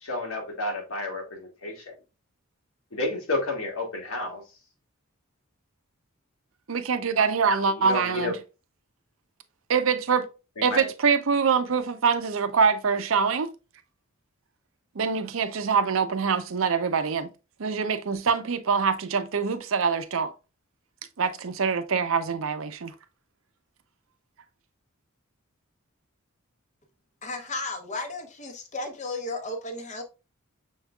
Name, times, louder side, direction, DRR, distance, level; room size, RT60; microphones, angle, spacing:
voice 1, 0.0-1.8 2.9-4.4 7.7-8.3 10.6-10.9, left 2 dB, 90° left, 1.6 m, -31 dB
voice 2, 6.7-8.3 9.7-10.3 10.6-13.5 15.0-17.3 17.6-20.3 21.2-22.9, right 5 dB, 70° right, 0.6 m, -24 dB
voice 3, 27.2-30.0, left 2 dB, 35° left, 0.8 m, -34 dB
6.2 x 3.6 x 2.3 m
head